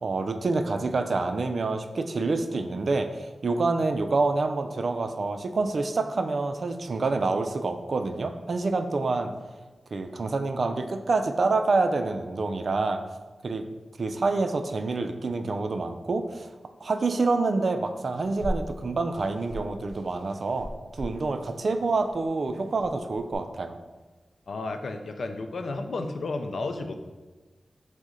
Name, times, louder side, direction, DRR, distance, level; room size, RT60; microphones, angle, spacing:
voice 1, 0.0-9.3 9.9-13.0 13.4-13.6 14.0-16.5 16.8-23.8, right 3 dB, 65° right, 7 dB, 0.3 m, -27 dB
sound 1, 18.1-23.3, equal, 30° left, 1.5 m, -39 dB
voice 2, 24.5-27.0, left 3 dB, 75° left, 6 dB, 0.4 m, -32 dB
6.2 x 2.1 x 3.7 m, 1.3 s
wide cardioid pair, 70°, 0 cm